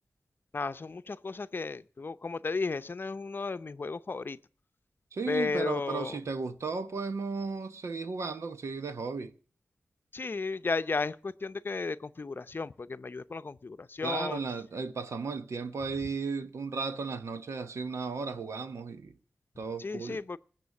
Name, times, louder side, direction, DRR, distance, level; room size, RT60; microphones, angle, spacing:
voice 1, 0.5-4.4 5.3-6.2 10.1-14.4 19.8-20.4, left 4 dB, 50° left, 0.6 m, -34 dB
voice 2, 5.1-9.3 14.0-19.1 19.6-20.2, right 4 dB, 85° right, 1.0 m, -35 dB
19.5 x 7.8 x 7.1 m
wide cardioid pair, 65°, 5 cm